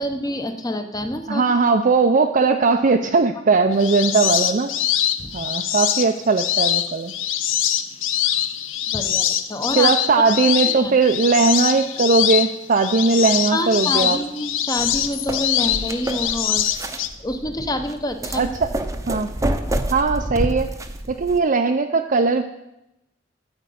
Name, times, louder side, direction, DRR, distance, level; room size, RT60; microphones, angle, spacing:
voice 1, 0.0-1.5 5.2-5.4 8.9-9.9 10.7-10.9 13.5-16.7 17.2-18.5, left 1 dB, 20° left, 7 dB, 1.0 m, -27 dB
voice 2, 1.3-4.7 5.3-7.1 9.8-14.2 18.3-18.7 19.1-19.3 19.9-20.7 21.1-22.4, right 4 dB, 45° right, 4 dB, 0.6 m, -19 dB
sound 1, 3.7-17.1, left 10 dB, 90° left, 0.7 m, -23 dB
sound 2, 14.8-21.4, right 1 dB, 15° right, 0.8 m, -28 dB
13.0 x 5.2 x 8.5 m, 0.88 s
head